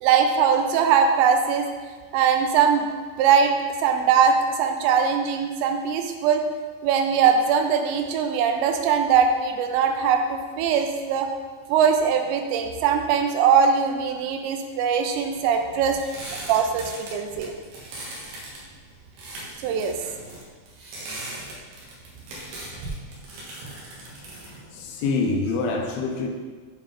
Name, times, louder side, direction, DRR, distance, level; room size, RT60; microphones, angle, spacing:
voice 1, 0.0-1.7 2.1-2.9 3.2-3.5 3.8-6.4 6.8-11.3 11.7-16.0 16.5-17.5 19.6-20.0, right 7 dB, 85° right, 5 dB, 2.8 m, -21 dB
sound 1, 15.3-25.7, right 2 dB, 65° right, 2.8 m, -39 dB
voice 2, 24.1-24.5 24.7-26.3, left 3 dB, 75° left, 1 dB, 2.3 m, -26 dB
7.6 x 4.9 x 3.7 m, 1.5 s
omnidirectional pair, 5.1 m